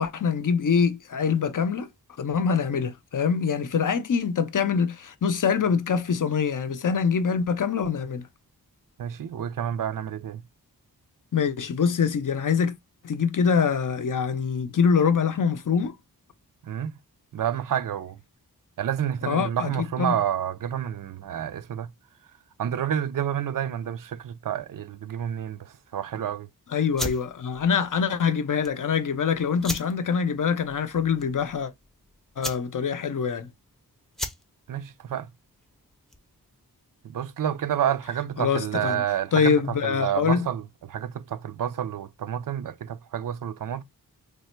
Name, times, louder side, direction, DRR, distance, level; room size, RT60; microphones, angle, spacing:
voice 1, 0.0-1.9 2.2-8.2 11.3-12.7 13.0-16.0 19.2-20.2 26.7-31.7 32.4-33.5 38.4-39.0 39.3-40.5, left 6 dB, 55° left, 0.6 m, -24 dB
voice 2, 9.0-10.4 16.6-16.9 17.3-18.2 18.8-21.9 22.6-26.5 34.7-35.3 37.0-40.6 40.9-43.8, right 10 dB, 60° right, 0.5 m, -29 dB
sound 1, 26.9-36.4, equal, ahead, 0.5 m, -39 dB
3.3 x 2.1 x 4.3 m
wide cardioid pair, 70°, 38 cm